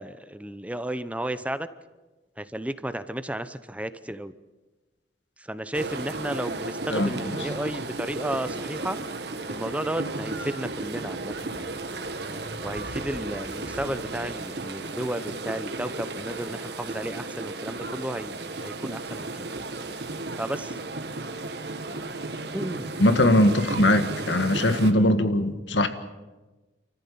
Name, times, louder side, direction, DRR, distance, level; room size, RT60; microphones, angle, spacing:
voice 1, 0.0-1.7 2.4-4.3 5.4-9.0 9.5-11.6 12.6-19.5 20.4-20.8 22.5-22.9, right 1 dB, 10° right, 12 dB, 0.7 m, -33 dB
sound 1, 5.7-24.9, right 2 dB, 65° right, 1.8 m, -34 dB
voice 2, 23.0-25.9, left 1 dB, 85° left, 9 dB, 1.8 m, -21 dB
29.0 x 14.5 x 8.6 m, 1.2 s
head